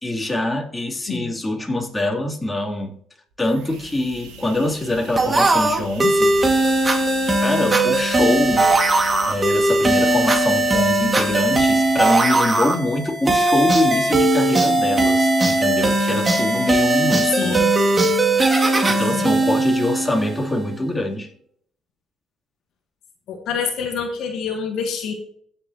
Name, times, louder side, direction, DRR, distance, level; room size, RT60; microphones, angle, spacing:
voice 1, 0.0-3.0 3.4-6.3 7.4-8.7 9.3-17.6 18.9-21.3, left 1 dB, 15° left, 3.3 m, -24 dB
sound 1, 3.3-12.8, equal, 90° right, 3.2 m, -40 dB
sound 2, 5.2-20.6, right 2 dB, 25° right, 2.3 m, -19 dB
voice 2, 17.4-17.7 19.2-19.5 23.3-25.1, left 6 dB, 70° left, 1.7 m, -27 dB
17.0 x 6.9 x 3.0 m
supercardioid pair, 70°, 0 cm